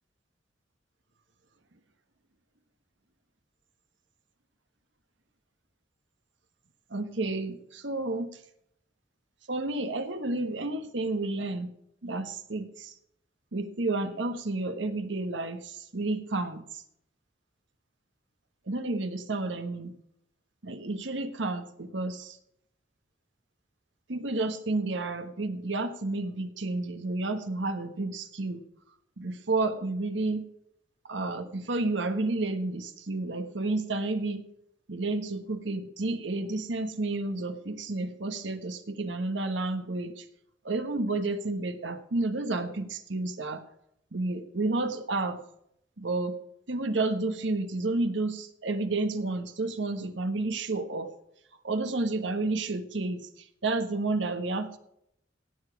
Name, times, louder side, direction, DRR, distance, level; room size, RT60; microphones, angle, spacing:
voice 1, 6.9-8.3 9.5-11.7 12.0-12.9 13.5-16.8 18.7-19.9 20.6-22.4 24.1-28.6 29.2-30.4 31.1-34.4 34.9-40.2 40.6-43.6 44.1-45.4 46.0-46.3 46.7-51.1 51.6-53.3 53.6-54.8, right 2 dB, 90° right, 9 dB, 1.3 m, -31 dB
17.0 x 7.2 x 4.7 m, 0.74 s
head